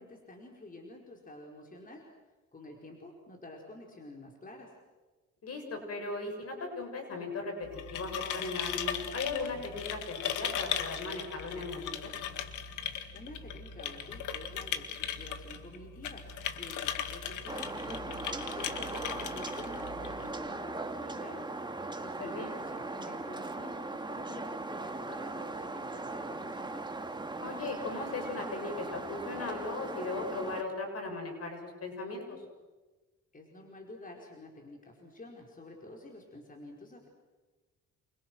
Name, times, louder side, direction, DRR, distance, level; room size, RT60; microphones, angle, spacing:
voice 1, 0.0-2.1 2.5-4.7 13.1-16.2 16.5-26.9 33.3-37.1, left 2 dB, 25° left, 0 dB, 4.9 m, -49 dB
voice 2, 5.4-12.1 22.2-22.6 27.4-32.4, left 3 dB, 55° left, 4 dB, 7.6 m, -38 dB
sound 1, 7.6-20.3, left 8 dB, 80° left, 2.0 m, -38 dB
sound 2, 17.5-30.6, right 2 dB, 15° right, 2.2 m, -39 dB
29.0 x 28.0 x 6.3 m, 1.3 s
cardioid pair, 90°, 30 cm